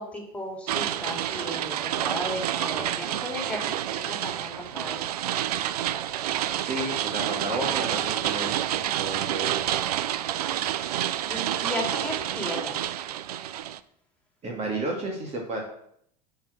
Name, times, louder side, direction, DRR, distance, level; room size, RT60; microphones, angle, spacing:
voice 1, 0.0-5.0 11.1-12.8, left 1 dB, 5° left, -1 dB, 2.9 m, -35 dB
sound 1, 0.7-13.8, right 11 dB, 65° right, 0.5 m, -29 dB
voice 2, 6.6-9.7 14.4-15.6, right 2 dB, 30° right, 0 dB, 2.1 m, -32 dB
8.4 x 4.7 x 6.4 m, 0.69 s
figure-of-eight pair, 75°, 21 cm